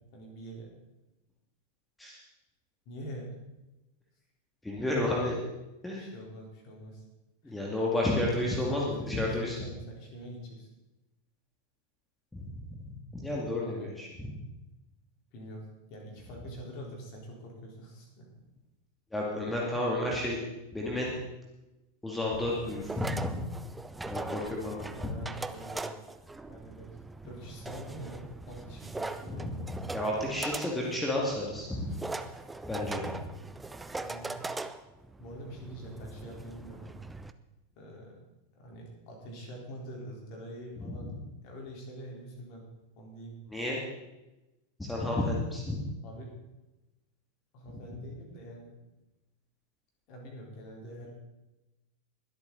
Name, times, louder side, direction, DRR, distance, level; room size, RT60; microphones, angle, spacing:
voice 1, 0.1-0.7 2.9-3.4 6.0-7.0 7.4-7.6 8.4-10.7 13.6-13.9 15.3-18.3 19.7-19.8 24.9-26.0 26.5-26.9 27.2-29.6 33.9-34.5 35.2-36.9 37.8-38.2 38.5-41.1 41.4-42.7 43.0-43.6 46.0-46.3 47.5-48.7 50.1-51.1, right 1 dB, 45° left, -1 dB, 4.2 m, -45 dB
voice 2, 4.6-5.4 5.8-6.0 7.4-9.6 12.3-12.8 13.1-14.4 19.1-20.4 20.7-21.1 22.0-23.4 24.0-25.1 29.3-32.0 32.6-33.1 40.8-41.0 43.5-43.8 44.8-45.8, left 1 dB, 5° left, -3 dB, 2.4 m, -32 dB
sound 1, 22.3-37.3, right 3 dB, 10° right, 0.6 m, -41 dB
22.0 x 8.3 x 4.1 m, 0.99 s
figure-of-eight pair, 90°, 0 cm